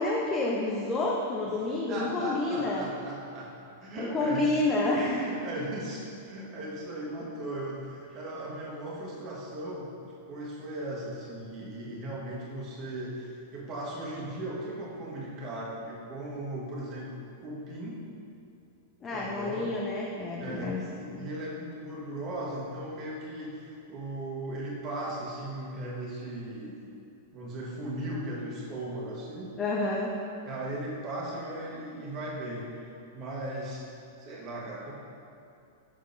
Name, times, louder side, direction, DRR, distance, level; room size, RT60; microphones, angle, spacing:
voice 1, 0.0-2.9 4.0-5.3 19.0-20.8 21.1-21.3 29.6-30.1, left 2 dB, 25° left, -3 dB, 0.6 m, -29 dB
voice 2, 1.5-3.5 3.8-4.6 5.2-9.9 10.3-18.0 19.1-19.7 20.4-26.8 27.3-29.5 30.4-32.7 33.1-33.8 34.2-34.9, right 1 dB, 35° right, -4 dB, 1.4 m, -37 dB
6.6 x 6.3 x 2.6 m, 2.6 s
figure-of-eight pair, 95°, 0 cm